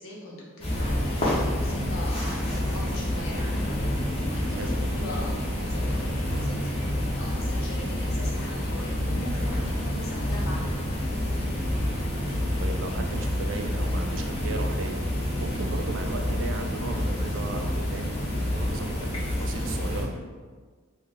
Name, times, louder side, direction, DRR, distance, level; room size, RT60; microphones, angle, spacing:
voice 1, 0.0-3.7 4.3-10.8, left 1 dB, 85° left, -4 dB, 0.8 m, -40 dB
sound 1, 0.6-20.0, left 1 dB, 30° left, 0.7 m, -28 dB
voice 2, 12.6-15.1 15.4-20.1, right 3 dB, 65° right, 4 dB, 0.3 m, -36 dB
2.5 x 2.2 x 3.7 m, 1.5 s
head